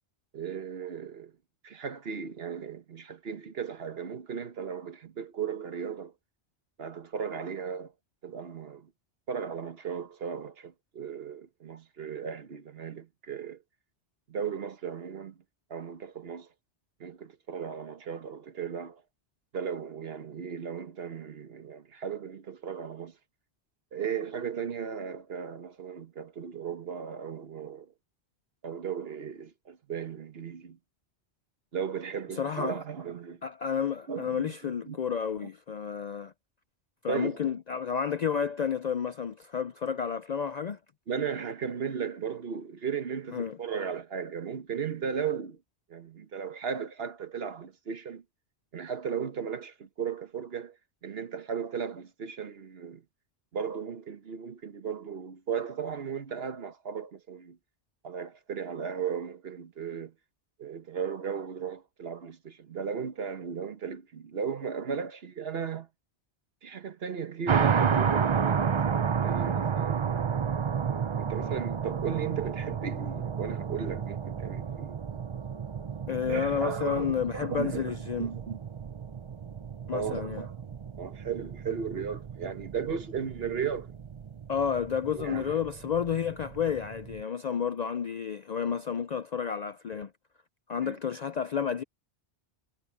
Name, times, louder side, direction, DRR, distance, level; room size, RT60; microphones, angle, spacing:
voice 1, 0.3-1.3 1.6-6.1 6.8-7.9 8.2-8.9 9.3-13.6 14.3-15.4 15.7-16.5 17.0-19.0 19.5-23.2 23.9-27.9 28.6-30.8 31.7-33.4 34.1-35.0 37.1-37.5 41.1-45.6 45.9-48.2 48.7-50.8 51.0-53.0 53.5-57.6 58.0-60.1 60.6-65.9 66.6-68.8 69.1-70.1 71.2-75.0 76.3-78.6 79.9-80.6 81.0-83.9 85.1-85.6 90.8-91.0, right 7 dB, 60° right, 1.3 m, -36 dB
voice 2, 32.3-32.8 33.4-36.3 37.0-40.8 43.3-43.6 76.1-78.3 79.9-80.4 84.5-90.1 90.7-91.8, left 7 dB, 55° left, 0.5 m, -31 dB
sound 1, 67.5-87.2, right 7 dB, 40° right, 0.4 m, -32 dB
omnidirectional pair, 1.2 m